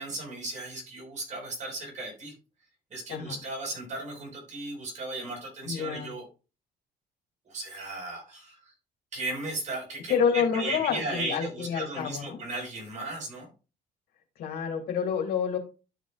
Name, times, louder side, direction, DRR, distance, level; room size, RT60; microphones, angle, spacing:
voice 1, 0.0-2.3 2.9-6.3 7.4-8.7 9.1-13.5, right 2 dB, 45° right, 0 dB, 5.0 m, -36 dB
voice 2, 5.6-6.1 10.1-12.4 14.4-15.6, left 7 dB, 70° left, 3 dB, 2.5 m, -28 dB
13.0 x 5.2 x 2.4 m, 0.33 s
cardioid pair, 110°, 17 cm